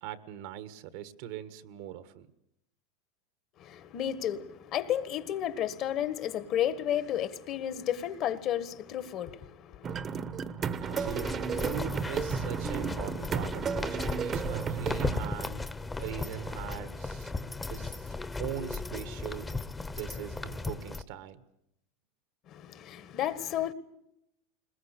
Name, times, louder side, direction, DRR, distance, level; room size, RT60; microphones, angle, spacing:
voice 1, 0.0-2.3 10.8-15.6 16.0-17.3 17.7-19.5 20.0-21.4, right 11 dB, 70° right, 1.6 m, -41 dB
voice 2, 3.6-10.0 22.5-23.7, left 10 dB, 45° left, 1.6 m, -32 dB
sound 1, 9.8-15.3, right 6 dB, 30° right, 1.1 m, -33 dB
sound 2, 10.8-21.0, left 3 dB, 15° left, 1.1 m, -36 dB
21.0 x 20.5 x 8.4 m
supercardioid pair, 115°, 0 cm